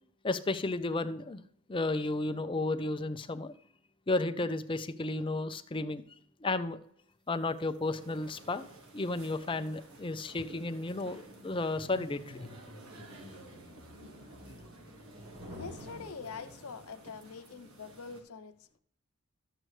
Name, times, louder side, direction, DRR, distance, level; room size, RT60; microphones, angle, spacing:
voice 1, 0.2-1.4 1.7-3.5 4.1-6.0 6.4-6.8 7.3-8.7 8.9-12.4, left 2 dB, 25° left, 0.5 m, -33 dB
sound 1, 7.6-16.9, equal, 45° right, 2.4 m, -51 dB
sound 2, 8.0-18.2, right 2 dB, 80° right, 1.6 m, -54 dB
voice 2, 15.5-18.8, left 5 dB, 85° left, 0.7 m, -45 dB
12.0 x 7.8 x 3.2 m
head